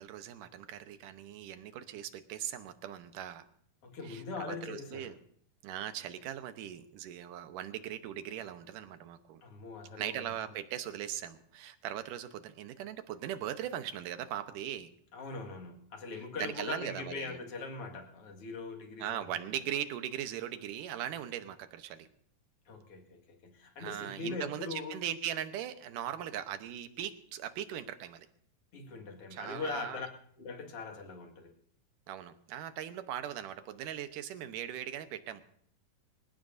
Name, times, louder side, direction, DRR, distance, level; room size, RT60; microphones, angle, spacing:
voice 1, 0.0-3.5 4.1-5.2 5.6-9.4 10.0-14.9 16.4-17.3 19.0-22.1 23.8-28.3 29.3-30.0 32.1-35.4, right 10 dB, 75° right, 9 dB, 2.5 m, -39 dB
voice 2, 3.8-5.2 9.4-10.2 15.1-19.5 22.7-25.1 28.7-30.1 30.4-31.5, left 4 dB, 45° left, 2 dB, 2.6 m, -41 dB
26.0 x 16.5 x 2.7 m, 0.62 s
omnidirectional pair, 3.9 m